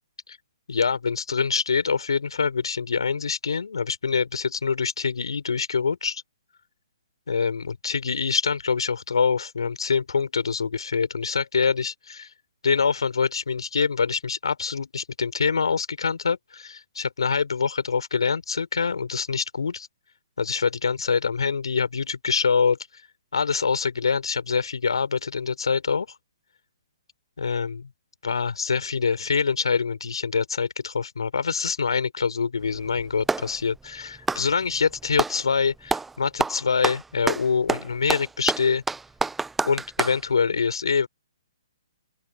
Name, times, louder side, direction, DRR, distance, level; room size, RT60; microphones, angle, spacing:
voice 1, 0.7-6.2 7.3-12.3 12.6-19.9 20.4-23.0 23.3-26.2 27.4-27.8 28.2-38.8 39.6-41.1, left 5 dB, 75° left, 3.6 m, -25 dB
Clapping, 32.6-33.5 34.2-35.4 35.9-36.1 36.4-40.2, right 4 dB, 5° right, 0.4 m, -27 dB
open air
hypercardioid pair, 135°, 3 cm